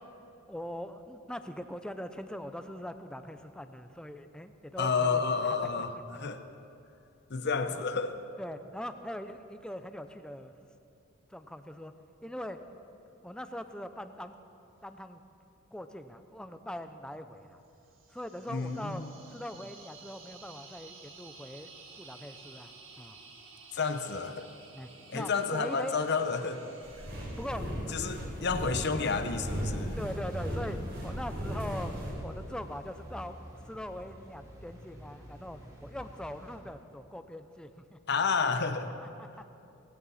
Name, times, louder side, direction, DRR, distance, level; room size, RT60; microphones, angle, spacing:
voice 1, 0.5-6.0 7.7-7.8 8.4-10.5 11.3-11.9 12.2-12.6 13.2-14.4 14.8-15.2 15.7-17.6 18.1-19.0 19.3-21.7 22.0-23.2 24.7-25.9 27.3-28.0 30.0-31.9 32.2-33.4 33.6-38.0 39.2-39.4, left 1 dB, 5° left, 9 dB, 0.5 m, -41 dB
voice 2, 4.8-6.4 7.3-8.2 18.5-19.1 23.7-24.5 25.1-26.7 27.9-30.0 38.1-38.9, left 5 dB, 50° left, 9 dB, 0.8 m, -30 dB
sound 1, 17.8-27.5, right 4 dB, 65° right, 1.8 m, -53 dB
sound 2, 26.8-32.1, equal, 50° right, 4.3 m, -36 dB
sound 3, 29.9-36.6, equal, 15° right, 2.8 m, -51 dB
18.0 x 16.0 x 4.2 m, 2.7 s
head